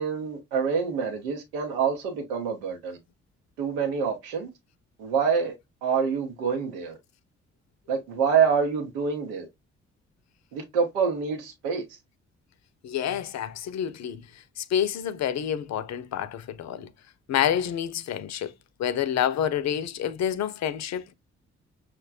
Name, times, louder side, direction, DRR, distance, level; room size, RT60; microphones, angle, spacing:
voice 1, 0.0-3.0 3.6-4.5 5.0-5.5 5.8-7.0 7.9-9.4 10.5-11.8, right 6 dB, 85° right, 0.8 m, -26 dB
voice 2, 12.8-14.2 14.6-16.9 17.3-18.5 18.8-21.1, left 9 dB, 55° left, 0.6 m, -28 dB
6.0 x 2.2 x 2.3 m
hypercardioid pair, 40°, 33 cm